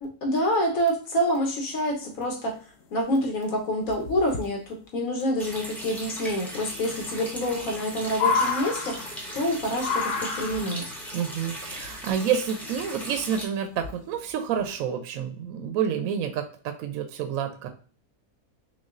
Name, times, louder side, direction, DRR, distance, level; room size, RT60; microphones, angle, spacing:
voice 1, 0.0-2.6 2.9-10.8, equal, 60° left, 1 dB, 1.4 m, -27 dB
sound 1, 2.8-2.9 3.2-3.5 3.9-4.4 6.0-6.1 6.3-6.4 6.9-7.0 7.3-9.5 9.8-10.9 11.8-12.5 13.2-13.3 13.7-14.1 14.6-14.8, left 5 dB, 90° left, 1.2 m, -29 dB
Water tap faucet, 5.4-13.4, equal, ahead, 0.5 m, -38 dB
voice 2, 11.1-17.7, right 8 dB, 70° right, 6 dB, 0.9 m, -29 dB
5.8 x 2.3 x 2.4 m, 0.41 s
omnidirectional pair, 1.7 m